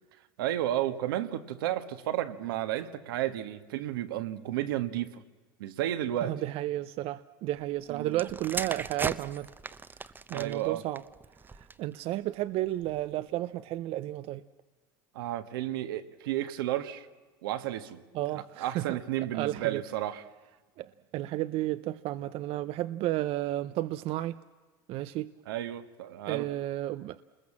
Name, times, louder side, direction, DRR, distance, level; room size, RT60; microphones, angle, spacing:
voice 1, 0.4-5.2 5.6-6.4 7.9-8.2 10.3-10.8 15.1-17.1 17.4-18.0 18.3-20.2 25.5-26.5, right 13 dB, 85° right, 1.6 m, -32 dB
voice 2, 6.2-9.5 10.3-11.0 11.5-14.4 18.1-19.8 20.8-24.4 24.9-25.3 26.3-27.2, right 15 dB, 55° right, 0.7 m, -32 dB
sound 1, 8.1-12.0 12.7-13.0, right 4 dB, 15° right, 0.9 m, -38 dB
28.5 x 21.0 x 7.4 m
supercardioid pair, 105°, 11 cm